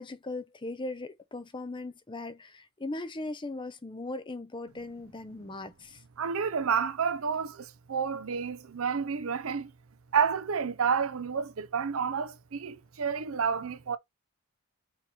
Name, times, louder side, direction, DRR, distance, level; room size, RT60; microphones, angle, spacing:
voice 1, 0.0-6.0, left 2 dB, 25° left, 0.6 m, -39 dB
voice 2, 6.2-9.7 10.1-14.0, right 6 dB, 80° right, 0.6 m, -30 dB
5.7 x 3.0 x 3.0 m
head